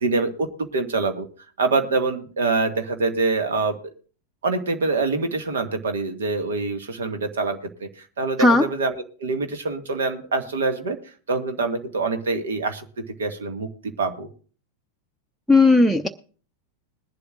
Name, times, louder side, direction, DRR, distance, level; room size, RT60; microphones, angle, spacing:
voice 1, 0.0-1.3 1.6-3.8 4.4-11.0 11.3-12.8 13.2-14.3, right 3 dB, 65° right, 7 dB, 1.8 m, -25 dB
voice 2, 15.5-16.1, left 3 dB, 5° right, 10 dB, 0.7 m, -15 dB
21.0 x 11.5 x 2.5 m, 0.40 s
figure-of-eight pair, 90°, 0 cm